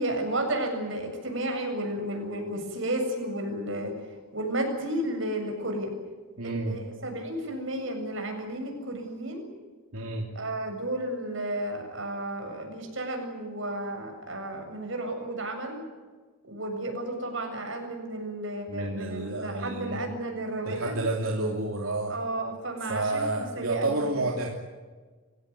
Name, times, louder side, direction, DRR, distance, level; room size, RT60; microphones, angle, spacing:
voice 1, 0.0-3.9 4.3-5.9 6.4-9.5 10.3-15.8 16.4-21.0 22.1-24.2, right 1 dB, 60° right, 4 dB, 7.3 m, -32 dB
voice 2, 6.4-6.8 9.9-10.2 18.7-20.0 20.6-22.1 22.8-24.5, right 2 dB, 80° right, 1 dB, 2.9 m, -30 dB
27.5 x 16.5 x 9.6 m, 1.4 s
head